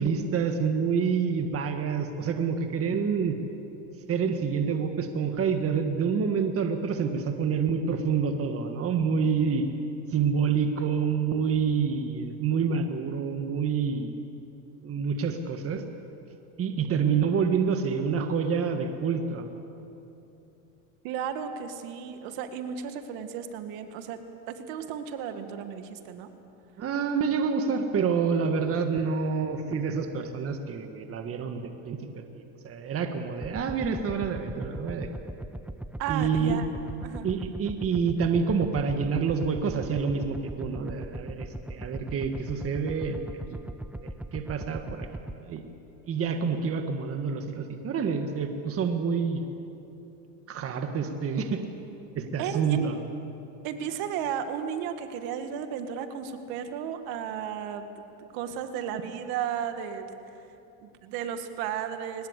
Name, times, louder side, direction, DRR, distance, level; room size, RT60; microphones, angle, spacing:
voice 1, 0.0-3.4 4.1-9.7 10.1-14.1 14.8-15.8 16.6-19.5 26.8-35.1 36.1-36.6 37.2-43.2 44.0-45.1 45.4-45.6 46.1-49.4 50.5-51.6 52.1-53.0, right 6 dB, 35° right, 5 dB, 1.7 m, -27 dB
voice 2, 21.0-24.2 24.5-26.3 36.0-36.7 37.0-37.3 52.4-52.9 53.6-60.1 60.8-62.3, right 8 dB, 70° right, 8 dB, 1.9 m, -34 dB
sound 1, 33.4-45.4, right 1 dB, 5° right, 0.6 m, -38 dB
22.0 x 19.5 x 8.3 m, 2.9 s
supercardioid pair, 115°, 37 cm